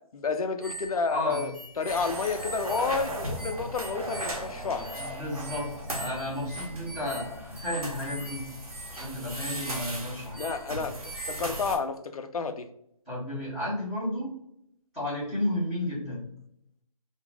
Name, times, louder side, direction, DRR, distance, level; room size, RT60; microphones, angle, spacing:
voice 1, 0.1-4.9 10.4-11.0 11.3-12.7, left 4 dB, 75° left, 7 dB, 0.5 m, -30 dB
sound 1, 0.6-11.7, right 2 dB, 20° right, 0.3 m, -43 dB
voice 2, 1.1-1.4 5.0-5.7 6.0-8.5 8.9-10.4 13.0-14.3 14.9-16.3, left 1 dB, ahead, -18 dB, 0.7 m, -32 dB
sound 2, 1.9-11.8, right 1 dB, 75° right, 0.9 m, -37 dB
2.5 x 2.0 x 3.2 m, 0.73 s
hypercardioid pair, 170°, 19 cm